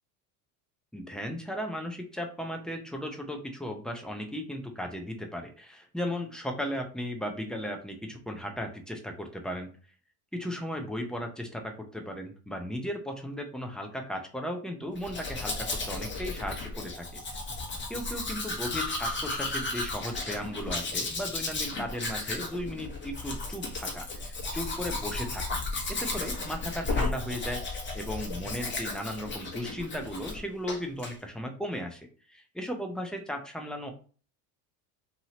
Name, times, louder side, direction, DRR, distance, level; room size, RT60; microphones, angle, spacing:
voice 1, 0.9-9.7 10.3-17.4 17.9-25.6 25.9-33.9, equal, ahead, 3 dB, 0.6 m, -36 dB
Domestic sounds home sounds, 15.0-30.4 30.7-31.1, left 2 dB, 25° left, 1.2 m, -34 dB
2.8 x 2.7 x 2.9 m, 0.39 s
hypercardioid pair, 80°, 47 cm